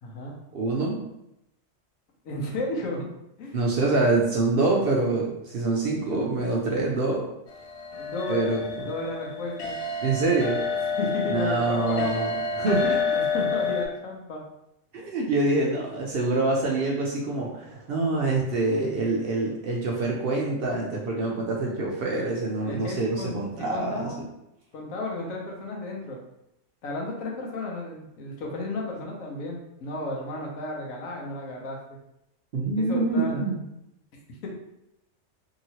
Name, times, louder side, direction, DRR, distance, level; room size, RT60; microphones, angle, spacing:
voice 1, 0.0-0.3 2.2-3.1 3.4-3.6 8.0-8.5 8.9-9.8 11.0-12.0 13.1-14.4 22.6-24.2 24.7-26.2 26.8-32.0 32.8-33.3 34.4-34.5, left 2 dB, 85° left, -1 dB, 1.1 m, -33 dB
voice 2, 0.5-1.0 3.5-7.3 8.3-8.6 10.0-10.6 11.3-13.0 14.9-24.1 32.5-33.6, right 2 dB, 60° right, -2 dB, 0.6 m, -25 dB
sound 1, 7.5-13.9, left 4 dB, 65° left, 0.9 m, -29 dB
3.0 x 2.8 x 2.8 m, 0.85 s
omnidirectional pair, 1.4 m